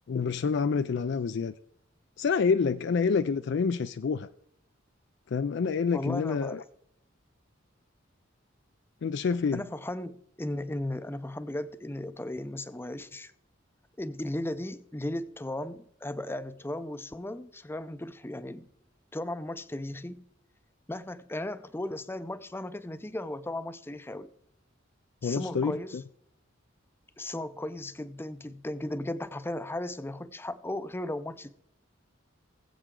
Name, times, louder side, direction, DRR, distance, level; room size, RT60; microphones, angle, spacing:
voice 1, 0.1-1.5 2.2-4.3 5.3-6.6 9.0-9.6 25.2-26.0, left 5 dB, 60° left, 0.4 m, -27 dB
voice 2, 5.9-6.6 9.5-13.3 14.0-18.7 19.1-20.2 20.9-24.3 25.2-26.0 27.2-31.5, left 1 dB, 10° left, 0.5 m, -36 dB
20.0 x 7.8 x 3.7 m
head